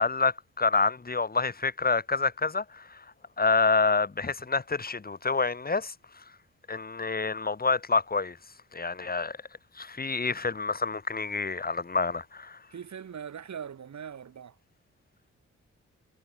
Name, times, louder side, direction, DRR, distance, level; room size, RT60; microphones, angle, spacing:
voice 1, 0.0-3.0 3.4-5.9 6.7-8.4 8.7-9.4 9.8-12.6, left 4 dB, 30° left, 2.2 m, -27 dB
voice 2, 12.7-14.6, right 8 dB, 70° right, 6.1 m, -41 dB
cardioid pair, 70°, 29 cm